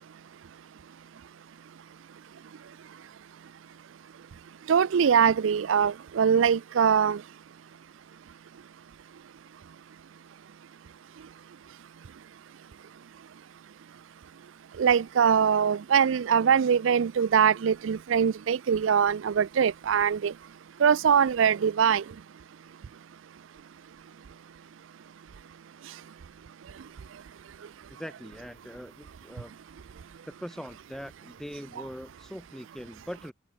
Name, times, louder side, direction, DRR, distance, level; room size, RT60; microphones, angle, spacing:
voice 1, 4.7-7.2 14.8-20.3 20.8-22.0, right 7 dB, 75° right, 0.4 m, -22 dB
voice 2, 28.0-29.5 30.2-33.3, equal, ahead, 5.4 m, -41 dB
open air
head